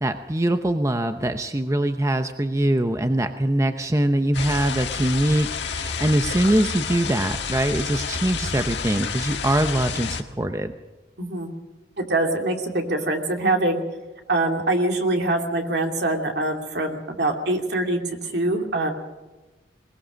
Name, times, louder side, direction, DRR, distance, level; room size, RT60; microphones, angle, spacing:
voice 1, 0.0-10.7, right 1 dB, 15° right, 8 dB, 0.7 m, -23 dB
sound 1, 4.3-10.2, left 5 dB, 80° left, 1.4 m, -29 dB
voice 2, 11.2-11.5 12.0-13.8 14.3-18.9, right 2 dB, 65° right, 3 dB, 2.7 m, -24 dB
21.0 x 20.5 x 6.3 m, 1.2 s
head